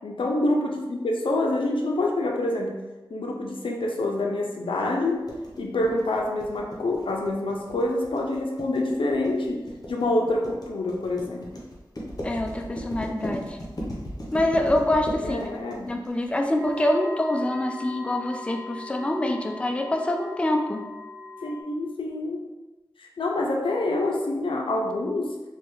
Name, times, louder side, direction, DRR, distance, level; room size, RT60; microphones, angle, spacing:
voice 1, 0.0-2.8 3.1-5.2 5.6-11.5 15.2-15.9 21.4-22.4 23.0-25.3, left 2 dB, 80° left, 0 dB, 0.5 m, -26 dB
sound 1, 5.3-16.8, equal, 45° left, 0.8 m, -36 dB
voice 2, 12.2-13.6 14.3-15.4 15.9-20.9, left 1 dB, 15° left, 3 dB, 0.4 m, -25 dB
sound 2, 16.6-21.6, left 3 dB, 40° right, 0.7 m, -40 dB
3.2 x 2.3 x 3.1 m, 1.1 s
cardioid pair, 40°, 9 cm